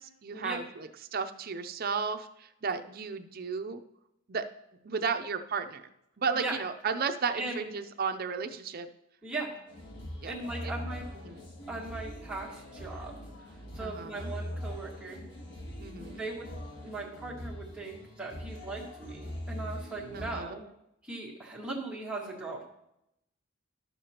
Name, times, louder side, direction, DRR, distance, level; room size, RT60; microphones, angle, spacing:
voice 1, 0.0-3.8 4.3-4.5 4.8-5.8 6.2-8.9 10.2-10.3 10.6-10.7 11.2-11.4 13.8-14.3 15.8-16.2 20.1-20.6, right 5 dB, 45° right, 8 dB, 0.5 m, -34 dB
voice 2, 7.3-7.6 9.2-9.6 10.2-11.0 11.7-13.2 13.6-15.2 16.1-16.5 16.8-20.6 21.0-22.7, right 2 dB, 5° right, -5 dB, 1.8 m, -39 dB
sound 1, 9.7-20.4, left 1 dB, 60° left, 1.5 m, -42 dB
12.5 x 6.9 x 2.9 m, 0.83 s
head